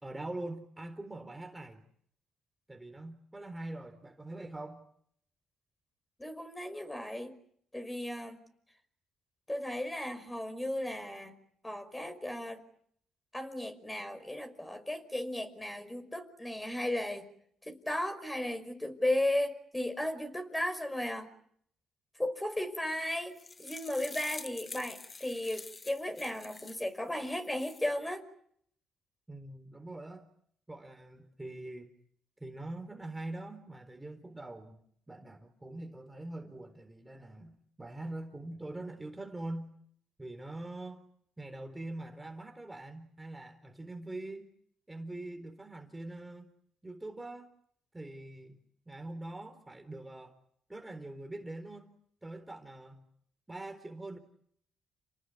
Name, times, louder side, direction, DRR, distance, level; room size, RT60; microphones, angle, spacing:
voice 1, 0.0-1.8 2.7-4.8 29.3-30.3 30.7-31.9 32.4-34.8 35.1-39.7 40.2-41.0 41.4-44.5 44.9-46.5 46.8-47.5 47.9-48.6 48.9-50.4 50.7-51.9 52.2-53.0 53.5-54.2, right 2 dB, 15° right, 6 dB, 4.0 m, -43 dB
voice 2, 6.2-7.4 7.7-8.4 9.5-11.4 11.6-12.6 13.3-17.3 17.6-21.3 22.2-28.2, left 1 dB, 10° left, 8 dB, 5.5 m, -35 dB
sound 1, 23.1-26.9 27.4-27.9, left 4 dB, 30° left, 1.2 m, -46 dB
30.0 x 19.5 x 9.7 m, 0.68 s
cardioid pair, 90°, 0 cm